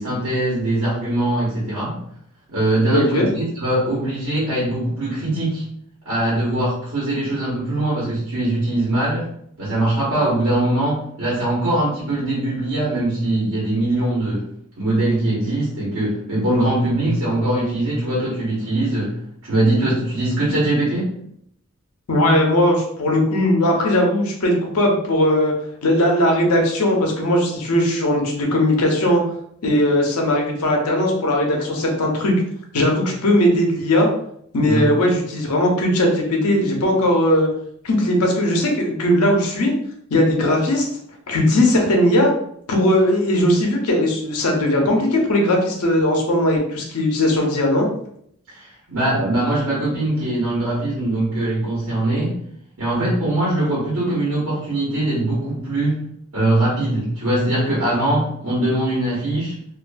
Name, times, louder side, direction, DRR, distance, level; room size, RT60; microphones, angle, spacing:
voice 1, 0.0-2.0 2.5-5.6 6.0-9.3 9.6-14.4 14.8-19.1 19.4-21.1 34.6-34.9 48.5-52.4 52.8-56.0 56.3-59.6, right 1 dB, 85° right, -7 dB, 1.0 m, -21 dB
voice 2, 2.9-3.3 22.1-25.5 25.8-29.2 29.6-32.3 32.7-34.1 34.5-37.5 37.8-39.7 40.1-40.8 41.3-42.3 42.7-47.9, left 1 dB, 90° left, 1 dB, 0.7 m, -18 dB
2.5 x 2.2 x 2.5 m, 0.69 s
head